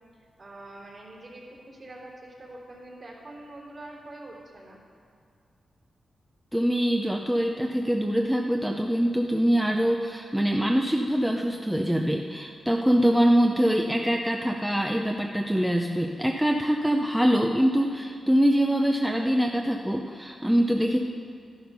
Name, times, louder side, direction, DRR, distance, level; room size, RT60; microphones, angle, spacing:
voice 1, 0.4-4.8, right 1 dB, 40° right, -3 dB, 3.3 m, -44 dB
voice 2, 6.5-21.0, equal, 5° right, 2 dB, 0.6 m, -24 dB
13.0 x 11.0 x 5.5 m, 2.3 s
wide cardioid pair, 115°, 0 cm